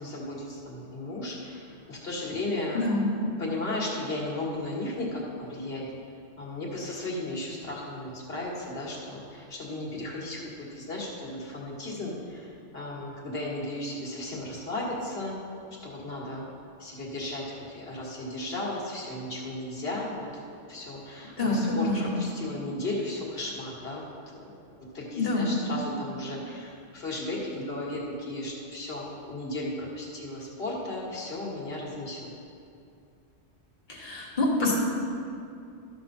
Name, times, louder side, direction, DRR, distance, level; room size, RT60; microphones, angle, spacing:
voice 1, 0.0-2.9 3.4-5.9 6.4-15.4 15.8-16.4 16.8-20.4 20.7-24.1 24.4-32.3, left 2 dB, 55° left, -4 dB, 2.0 m, -35 dB
voice 2, 2.7-3.1 21.4-22.2 25.1-25.5 33.9-34.8, left 2 dB, 40° left, -5 dB, 1.8 m, -26 dB
13.0 x 6.6 x 4.3 m, 2.5 s
omnidirectional pair, 1.3 m